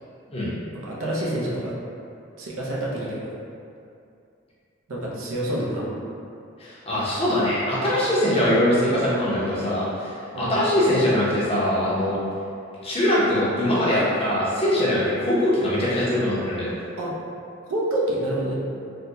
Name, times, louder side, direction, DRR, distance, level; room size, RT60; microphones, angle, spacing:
voice 1, 0.7-1.7 2.4-3.3 4.9-6.0 10.3-10.6 17.0-17.2 17.7-18.5, right 1 dB, 80° right, -4 dB, 0.6 m, -27 dB
voice 2, 6.6-12.2 12.8-16.7, left 1 dB, 30° left, -9 dB, 0.7 m, -22 dB
3.4 x 2.2 x 2.7 m, 2.5 s
head